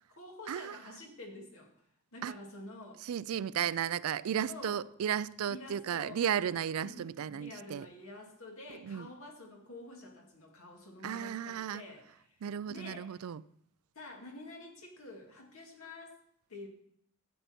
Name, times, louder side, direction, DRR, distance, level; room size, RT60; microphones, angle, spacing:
voice 1, 0.1-1.7 2.1-3.0 4.5-4.8 5.5-6.2 6.8-12.4 12.7-13.2 13.9-16.2 16.5-16.7, left 2 dB, 75° left, 2.3 m, -48 dB
voice 2, 3.0-7.9 8.8-9.1 11.0-11.8 12.4-13.4, right 9 dB, 80° right, 0.4 m, -34 dB
12.5 x 8.4 x 4.3 m
head